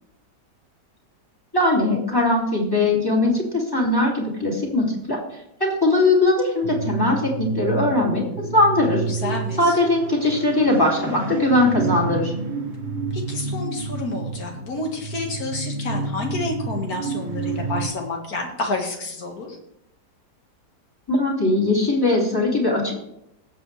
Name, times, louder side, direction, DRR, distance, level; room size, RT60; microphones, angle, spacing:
voice 1, 1.5-5.2 5.6-8.2 8.5-9.0 9.6-12.3 21.1-22.9, left 2 dB, 15° left, -2 dB, 2.8 m, -20 dB
sound 1, 6.6-17.9, right 4 dB, 40° right, 0.8 m, -29 dB
voice 2, 9.1-9.8 13.1-19.6, left 2 dB, 60° left, 1 dB, 2.3 m, -29 dB
19.0 x 7.8 x 3.3 m, 0.80 s
omnidirectional pair, 1.8 m